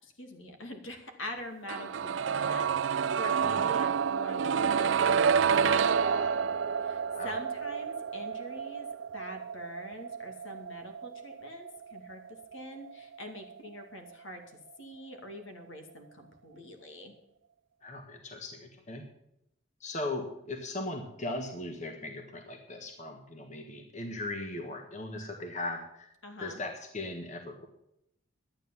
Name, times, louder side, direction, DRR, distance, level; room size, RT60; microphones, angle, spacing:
voice 1, 0.0-6.5 6.8-8.9 9.1-17.2 26.2-26.6, equal, 75° left, 5 dB, 2.4 m, -44 dB
sound 1, 1.7-13.5 13.8-13.9, right 6 dB, 65° right, 0.4 m, -29 dB
voice 2, 17.8-19.0 19.8-26.1 26.4-27.7, left 2 dB, 35° left, 4 dB, 1.4 m, -38 dB
12.0 x 9.6 x 7.2 m, 0.80 s
head